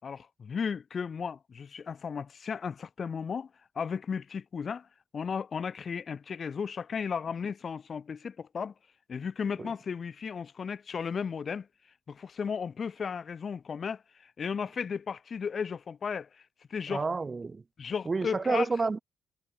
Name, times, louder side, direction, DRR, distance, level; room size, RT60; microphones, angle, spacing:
voice 1, 0.0-3.5 3.7-4.9 5.1-8.7 9.1-11.7 12.1-16.3 16.7-17.0 17.8-18.7, left 6 dB, 45° left, 3.4 m, -35 dB
voice 2, 16.9-17.6 18.1-19.0, right 4 dB, 30° right, 0.7 m, -30 dB
cardioid pair, 90°, 0 cm